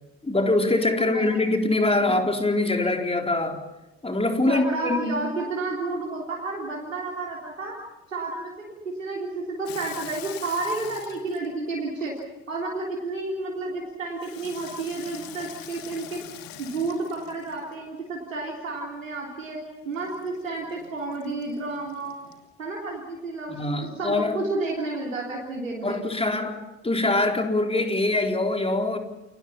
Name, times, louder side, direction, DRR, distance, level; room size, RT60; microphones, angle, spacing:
voice 1, 0.2-3.6 4.0-5.2 23.5-24.4 25.8-29.0, left 2 dB, 15° left, 3 dB, 4.2 m, -24 dB
voice 2, 4.4-7.8 8.1-12.1 12.5-16.2 16.6-19.6 19.9-22.3 22.6-26.2, right 3 dB, 90° right, -3 dB, 3.6 m, -31 dB
Water tap faucet / Sink (filling or washing), 9.6-12.6 14.2-17.9 19.9-22.5, left 11 dB, 65° left, 2.7 m, -44 dB
29.5 x 25.0 x 5.7 m, 1.0 s
figure-of-eight pair, 55°, 38 cm